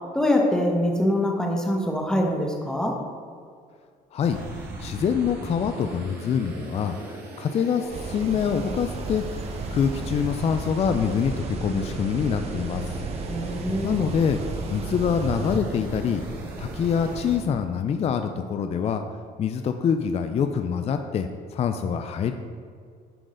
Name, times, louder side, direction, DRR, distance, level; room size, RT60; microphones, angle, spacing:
voice 1, 0.1-2.9 13.3-14.0, left 1 dB, 5° left, 0 dB, 1.1 m, -24 dB
sound 1, 4.2-17.4, right 1 dB, 70° right, 1.4 m, -37 dB
voice 2, 4.8-13.0 13.8-14.4 14.7-16.2 16.6-19.0 19.4-22.3, left 7 dB, 40° left, 7 dB, 0.4 m, -25 dB
sound 2, 7.9-15.6, right 4 dB, 40° right, 0.6 m, -34 dB
11.5 x 3.9 x 3.8 m, 2.1 s
cardioid pair, 110°, 17 cm